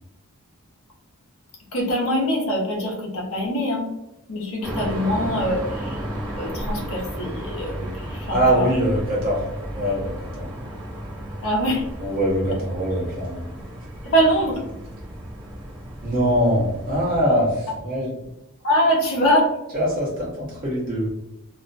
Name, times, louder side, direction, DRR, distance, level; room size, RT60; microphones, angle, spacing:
voice 1, 1.7-3.9 4.3-6.0 6.4-8.7 11.4-11.9 14.0-14.6 18.6-19.5, equal, 65° left, -2 dB, 0.7 m, -23 dB
sound 1, 4.6-17.2, equal, 20° right, 0.5 m, -33 dB
voice 2, 8.3-9.5 9.7-10.5 12.0-13.5 16.0-18.1 19.2-19.3 19.7-21.1, equal, 40° right, -5 dB, 0.9 m, -23 dB
2.4 x 2.0 x 2.5 m, 0.90 s
head